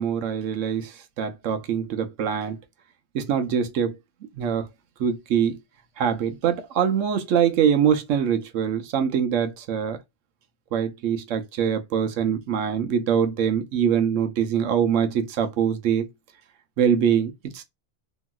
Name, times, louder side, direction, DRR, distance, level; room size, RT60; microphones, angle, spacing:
voice 1, 0.0-2.6 3.1-4.0 4.3-4.7 5.0-5.6 6.0-10.0 10.7-16.1 16.8-17.6, right 8 dB, 85° right, 1.0 m, -23 dB
3.0 x 2.8 x 2.2 m
omnidirectional pair, 1.3 m